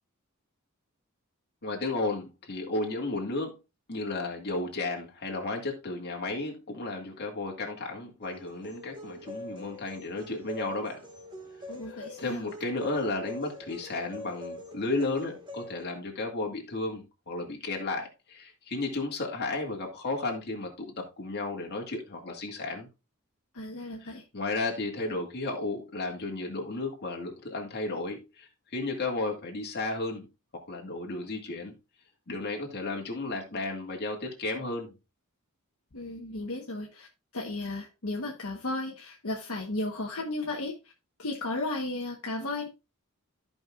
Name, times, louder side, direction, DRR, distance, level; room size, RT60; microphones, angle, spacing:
voice 1, 1.6-3.5 3.9-11.0 11.9-22.9 24.0-30.3 30.7-31.7 32.3-35.0, left 2 dB, 50° left, 2.1 m, -33 dB
sound 1, 8.2-15.8, left 1 dB, 20° right, 1.7 m, -43 dB
voice 2, 11.7-12.4 23.5-24.2 35.9-37.1 37.3-40.7 41.2-42.7, left 2 dB, 65° left, 1.2 m, -34 dB
14.0 x 5.4 x 2.4 m
head